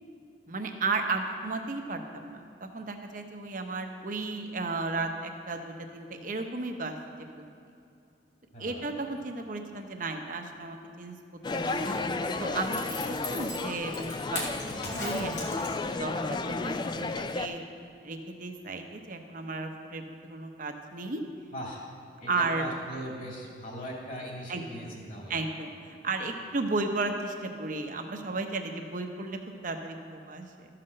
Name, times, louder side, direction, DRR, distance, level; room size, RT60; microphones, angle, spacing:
voice 1, 0.5-7.0 8.6-11.1 11.5-12.0 12.4-12.8 13.1-14.5 15.0-17.6 18.0-21.2 22.3-22.7 24.5-24.9 25.3-30.7, right 3 dB, 45° right, 4 dB, 0.8 m, -34 dB
voice 2, 8.5-8.9 14.7-14.8 21.5-21.8 22.2-25.4, equal, 45° left, -3 dB, 2.4 m, -40 dB
sound 1, 11.4-17.5, left 3 dB, 25° left, 0.3 m, -32 dB
Zipper (clothing), 11.5-16.1 16.4-16.5, left 2 dB, 75° left, 2.3 m, -39 dB
13.0 x 5.9 x 6.5 m, 2.5 s
head